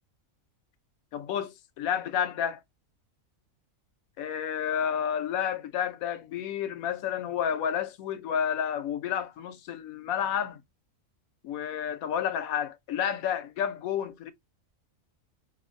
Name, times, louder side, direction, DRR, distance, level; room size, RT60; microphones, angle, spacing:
voice 1, 1.1-2.6 4.2-10.6 11.4-14.3, left 8 dB, 80° left, 1.0 m, -30 dB
4.9 x 2.5 x 2.4 m
omnidirectional pair, 1.5 m